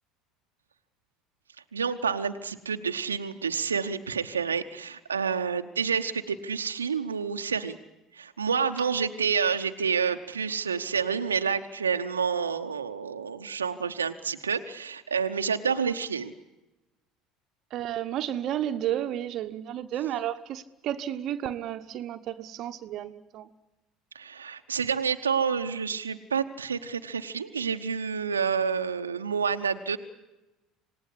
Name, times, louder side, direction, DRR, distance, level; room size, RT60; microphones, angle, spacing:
voice 1, 1.7-7.8 8.1-16.3 24.1-30.0, right 6 dB, 85° right, 7 dB, 0.9 m, -29 dB
voice 2, 17.7-23.5, right 11 dB, 50° right, 9 dB, 1.1 m, -32 dB
27.0 x 19.0 x 9.9 m, 1.0 s
figure-of-eight pair, 65°, 0 cm